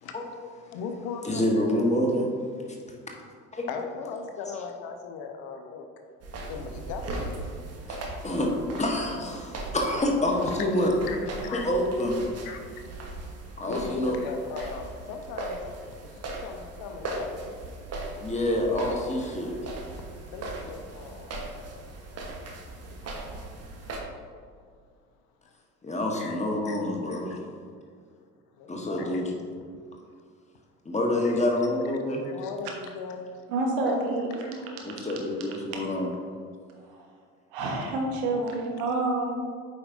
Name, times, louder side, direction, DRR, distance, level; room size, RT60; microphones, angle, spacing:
voice 1, 0.6-1.4 3.7-5.9 6.5-7.4 9.2-9.7 10.5-10.6 10.8-11.7 12.4-15.6 16.0-17.3 20.3-21.8 22.8-23.3 26.1-26.4 26.7-26.8 27.3-27.4 28.6-29.2 31.2-31.4 32.2-33.3 34.4-34.6, left 5 dB, 55° left, 5 dB, 0.8 m, -39 dB
voice 2, 1.2-2.3 3.5-3.7 7.9-8.5 8.8-10.9 11.5-12.2 13.6-14.2 18.2-19.7 25.8-27.4 28.7-29.4 30.8-32.2 34.8-36.1, left 1 dB, 15° left, 0 dB, 1.3 m, -27 dB
sound 1, 6.2-24.0, right 2 dB, 35° right, 1.2 m, -39 dB
voice 3, 33.5-34.9 36.9-37.0 37.5-39.3, right 2 dB, 65° right, 0 dB, 1.3 m, -28 dB
8.6 x 5.2 x 2.6 m, 2.1 s
figure-of-eight pair, 55°, 42 cm